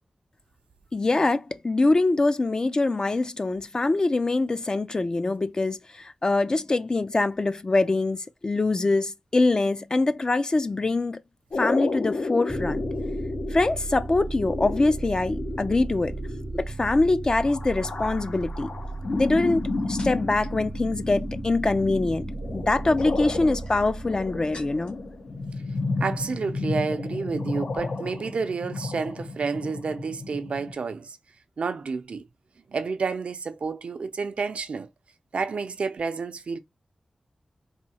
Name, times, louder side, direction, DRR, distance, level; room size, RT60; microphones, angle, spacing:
voice 1, 0.9-11.2 11.6-12.8 13.5-16.2 16.5-18.7 19.1-22.3 22.5-25.0, left 2 dB, 40° left, 0.4 m, -24 dB
sound 1, 11.5-30.7, left 3 dB, 85° left, 0.8 m, -32 dB
sound 2, 12.5-25.9, right 3 dB, 30° right, 0.4 m, -36 dB
sound 3, 17.2-17.5 18.2-20.6 20.9-21.4 22.7-25.1 25.4-26.1 26.3-26.6, left 1 dB, 65° left, 1.4 m, -50 dB
voice 2, 26.0-31.2 31.6-32.2 32.7-34.9 35.3-36.6, right 4 dB, 80° right, 0.5 m, -30 dB
4.1 x 2.7 x 2.8 m
wide cardioid pair, 90°, 2 cm